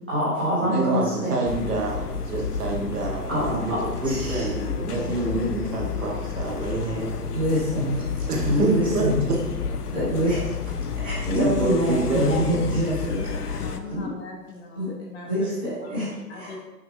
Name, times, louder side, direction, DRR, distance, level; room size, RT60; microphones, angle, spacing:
voice 1, 0.1-1.4 3.3-3.8 4.0-4.4 5.0-5.1 7.0-7.1 7.3-9.3 9.9-10.5 11.0-14.1 14.7-14.9 15.2-16.5, equal, 5° right, -13 dB, 0.5 m, -26 dB
voice 2, 0.6-7.2 8.3-9.4 11.2-12.7, right 2 dB, 65° right, -1 dB, 1.7 m, -27 dB
sound 1, 1.4-13.8, left 5 dB, 65° left, 0.6 m, -31 dB
voice 3, 13.5-16.0 16.3-16.6, left 4 dB, 40° left, -1 dB, 1.1 m, -41 dB
6.0 x 5.8 x 2.7 m, 1.1 s
figure-of-eight pair, 135°, 50 cm